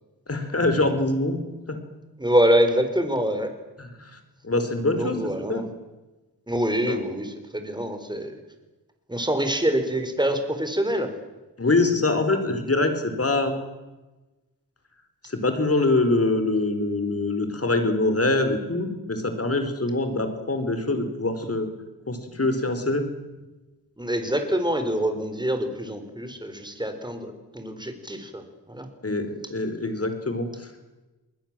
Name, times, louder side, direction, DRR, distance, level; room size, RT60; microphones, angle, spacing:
voice 1, 0.3-1.4 3.8-4.2 4.4-5.2 5.5-5.6 6.9-7.0 11.6-12.9 13.2-13.5 15.3-21.7 22.1-23.0 29.0-30.7, left 2 dB, 35° left, 8 dB, 4.5 m, -24 dB
voice 2, 2.2-3.5 4.9-5.7 6.5-8.3 9.1-11.1 24.0-28.4 28.7-28.9, right 1 dB, 10° right, 7 dB, 4.4 m, -25 dB
28.0 x 20.5 x 7.6 m, 1.1 s
wide cardioid pair, 85°, 39 cm